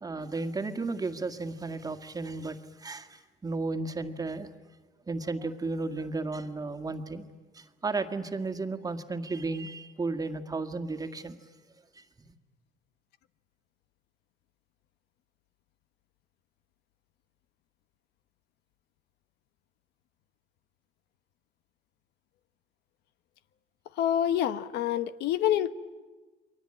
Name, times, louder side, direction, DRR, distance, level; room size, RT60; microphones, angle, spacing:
voice 1, 0.0-4.5 5.1-7.3 7.5-11.4 11.9-12.0, right 3 dB, 20° right, 7 dB, 1.8 m, -34 dB
voice 2, 24.0-25.7, left 11 dB, 80° left, 13 dB, 1.0 m, -27 dB
29.0 x 23.0 x 8.8 m, 1.3 s
cardioid pair, 110°, 17 cm